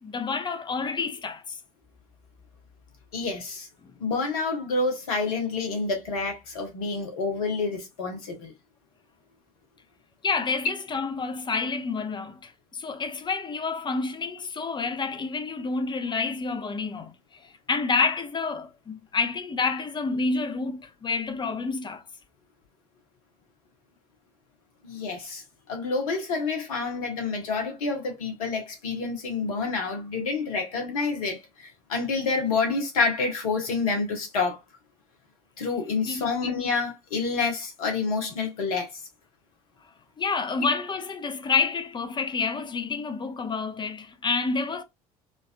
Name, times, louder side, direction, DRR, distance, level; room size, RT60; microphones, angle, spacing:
voice 1, 0.0-1.6 10.2-17.1 17.4-22.0 36.1-36.3 40.2-44.8, left 4 dB, 25° left, 0.7 m, -29 dB
voice 2, 3.1-3.7 4.0-8.5 24.8-34.6 35.6-38.9, left 4 dB, 70° left, 1.2 m, -28 dB
3.8 x 2.5 x 2.3 m
figure-of-eight pair, 60°, 19 cm